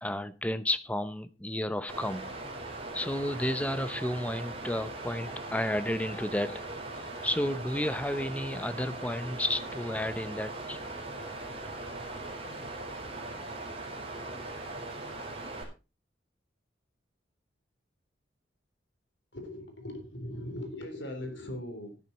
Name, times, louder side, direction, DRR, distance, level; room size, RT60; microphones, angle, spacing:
voice 1, 0.0-2.3 2.9-6.7 7.2-10.8, left 1 dB, 10° left, 0.8 m, -32 dB
Water, 1.9-15.6, right 2 dB, 30° right, 4.5 m, -40 dB
voice 2, 19.3-22.0, left 1 dB, 70° left, 3.8 m, -39 dB
12.5 x 11.0 x 4.3 m
head